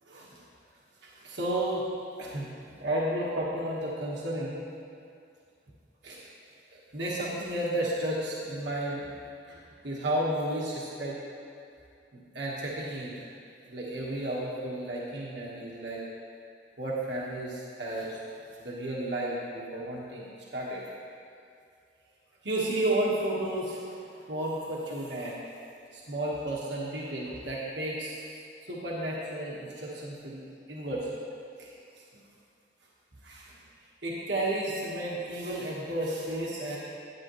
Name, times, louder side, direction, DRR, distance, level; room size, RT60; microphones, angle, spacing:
voice 1, 0.1-0.4 1.0-1.9 2.2-2.5 2.7-4.6 6.0-6.2 6.9-9.1 9.5-9.6 9.8-11.2 12.1-13.2 13.6-16.0 16.8-18.2 18.6-20.8 22.4-25.4 25.9-28.2 28.7-30.4 30.7-31.1 31.6-31.7 33.2-33.6 34.0-36.8, right 1 dB, 70° right, -5 dB, 1.4 m, -32 dB
11.0 x 9.5 x 3.1 m, 2.5 s
head